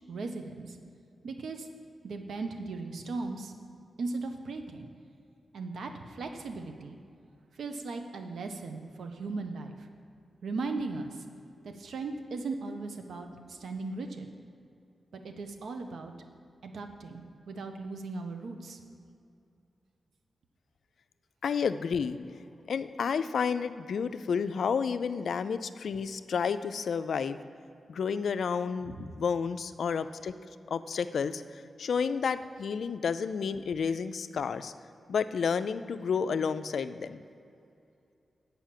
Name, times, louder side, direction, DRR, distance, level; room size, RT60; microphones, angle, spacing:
voice 1, 0.1-0.8 1.2-1.7 2.0-3.5 4.0-4.9 5.5-7.0 7.6-9.9 10.4-11.2 11.6-14.3 15.1-16.1 16.6-18.8 28.8-28.9, right 3 dB, 85° right, 5 dB, 0.7 m, -37 dB
voice 2, 21.4-22.2 22.7-27.4 27.9-30.3 30.7-31.4 31.8-34.7 35.1-37.2, left 6 dB, 80° left, 12 dB, 0.3 m, -30 dB
8.7 x 5.6 x 7.4 m, 2.6 s
cardioid pair, 60°, 0 cm